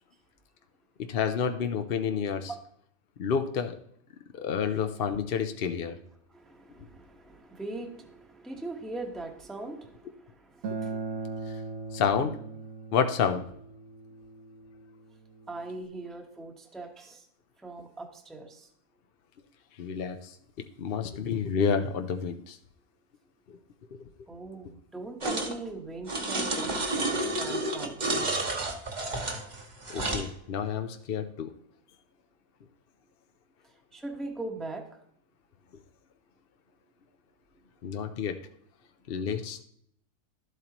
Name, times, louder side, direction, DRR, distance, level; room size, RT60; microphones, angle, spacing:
voice 1, 1.0-2.5 3.2-3.8 4.3-6.0 11.9-12.4 12.9-13.5 19.8-20.3 20.8-22.6 23.5-23.6 23.9-24.0 29.9-31.5 37.8-38.4 39.1-39.6, left 6 dB, 55° left, 7 dB, 0.7 m, -29 dB
voice 2, 6.3-11.3 15.5-17.3 17.6-18.7 24.3-28.3 33.9-34.8, right 2 dB, ahead, 2 dB, 1.0 m, -41 dB
Acoustic guitar, 10.6-15.8, right 4 dB, 65° right, 1.4 m, -39 dB
sound 1, 25.2-25.5 26.1-30.3, right 2 dB, 30° right, 1.2 m, -30 dB
12.0 x 8.0 x 3.0 m, 0.69 s
omnidirectional pair, 1.6 m